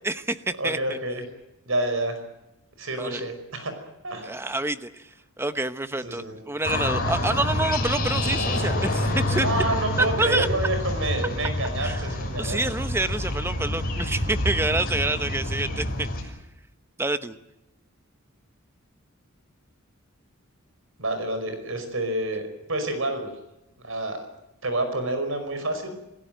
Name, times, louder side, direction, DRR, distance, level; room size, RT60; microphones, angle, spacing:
voice 1, 0.0-1.0 3.0-3.2 4.2-5.1 5.4-9.5 10.0-10.5 11.8-12.1 12.4-16.3 17.0-17.4, right 2 dB, 10° right, 11 dB, 1.0 m, -27 dB
voice 2, 0.6-1.2 1.7-2.2 2.8-3.7 4.0-4.4 6.0-6.4 9.4-12.6 21.0-22.4 22.7-23.3 23.8-24.3 24.6-26.0, right 1 dB, 65° right, 8 dB, 5.2 m, -28 dB
sound 1, 6.6-16.2, left 1 dB, 45° left, 6.5 m, -27 dB
28.0 x 16.5 x 9.2 m, 0.89 s
head